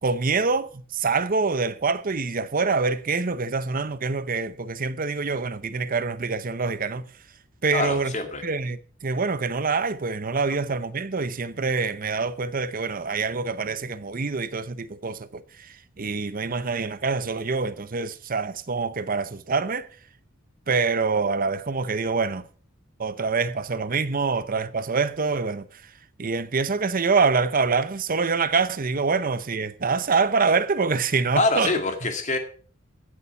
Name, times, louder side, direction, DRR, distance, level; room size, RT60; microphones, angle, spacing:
voice 1, 0.0-7.0 7.6-8.1 8.4-19.9 20.7-22.4 23.0-25.8 26.2-31.7, right 4 dB, 45° right, 0.7 m, -25 dB
voice 2, 7.7-8.4 31.3-32.4, left 3 dB, 35° left, 2.0 m, -25 dB
15.5 x 7.0 x 5.9 m
head